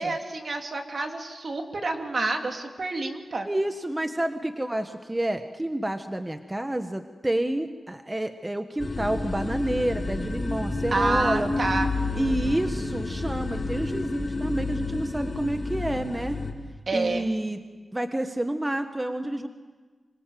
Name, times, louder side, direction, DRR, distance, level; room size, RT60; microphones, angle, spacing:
voice 1, 0.0-3.5 10.9-12.6 16.9-17.3, right 3 dB, 60° right, 4 dB, 2.8 m, -29 dB
voice 2, 3.4-11.5 12.1-16.4 16.9-17.6 17.9-19.5, right 1 dB, 20° right, 7 dB, 1.4 m, -29 dB
sound 1, 8.8-16.5, left 3 dB, 45° left, 3.6 m, -30 dB
26.0 x 23.5 x 7.7 m, 1.4 s
cardioid pair, 60°, 0 cm